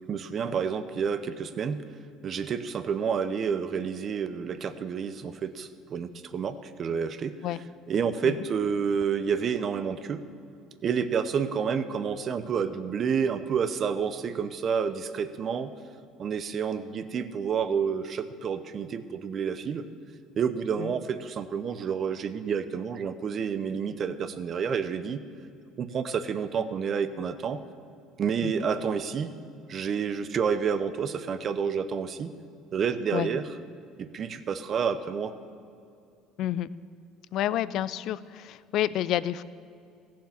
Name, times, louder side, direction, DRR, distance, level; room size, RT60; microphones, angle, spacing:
voice 1, 0.0-1.8 2.2-7.4 7.9-10.2 10.8-15.7 16.2-19.9 20.4-25.2 25.8-27.6 28.2-29.3 29.7-32.3 32.7-33.5 34.0-35.3, right 6 dB, 45° right, 11 dB, 0.7 m, -29 dB
voice 2, 37.3-39.4, left 12 dB, 65° left, 18 dB, 0.4 m, -29 dB
15.0 x 7.4 x 7.2 m, 2.4 s
supercardioid pair, 80°, 0 cm